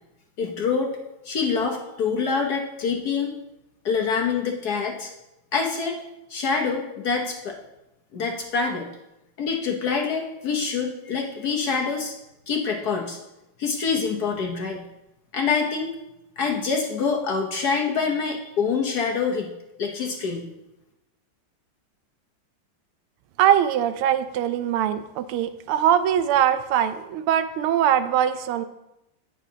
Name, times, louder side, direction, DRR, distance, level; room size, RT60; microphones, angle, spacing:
voice 1, 0.4-1.0 1.2-3.3 3.8-5.1 5.5-6.0 6.3-7.6 8.1-8.9 9.4-12.1 12.5-13.2 13.6-14.8 15.3-15.9 16.4-19.5 19.8-20.5, left 5 dB, 60° left, 2 dB, 1.1 m, -25 dB
voice 2, 23.4-28.6, right 10 dB, 85° right, 12 dB, 1.5 m, -22 dB
18.0 x 6.2 x 2.8 m, 0.92 s
omnidirectional pair, 2.4 m